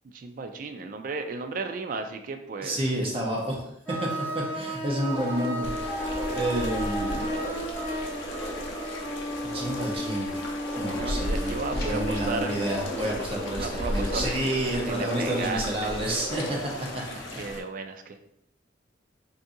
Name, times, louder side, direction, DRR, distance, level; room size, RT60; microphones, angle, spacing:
voice 1, 0.1-2.9 10.9-12.6 13.6-15.9 16.9-18.2, right 3 dB, 45° right, 6 dB, 0.3 m, -35 dB
voice 2, 2.6-3.7 4.0-6.0 6.3-7.3 9.4-10.4 10.8-17.4, right 1 dB, 30° right, -2 dB, 0.7 m, -30 dB
sound 1, 3.9-12.9, equal, 10° left, 1.1 m, -33 dB
sound 2, 5.0-17.0, right 1 dB, 55° left, 0.9 m, -38 dB
sound 3, 5.6-17.6, left 1 dB, 90° left, 0.6 m, -36 dB
2.7 x 2.6 x 3.6 m, 0.75 s
head